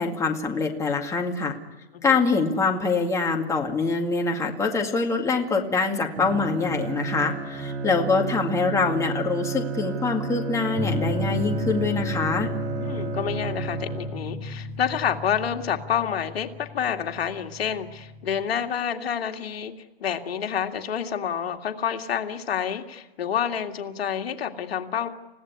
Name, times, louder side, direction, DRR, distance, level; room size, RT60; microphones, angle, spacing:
voice 1, 0.0-1.6 2.0-12.5, left 4 dB, 10° left, 1 dB, 2.2 m, -24 dB
Bowed string instrument, 6.2-14.5, right 5 dB, 35° right, 6.0 m, -32 dB
sound 1, 10.8-18.4, left 2 dB, 15° right, 1.9 m, -34 dB
voice 2, 12.8-19.7 20.0-25.1, left 8 dB, 75° left, 5 dB, 2.2 m, -28 dB
29.5 x 16.5 x 9.7 m, 1.1 s
hypercardioid pair, 140°, 31 cm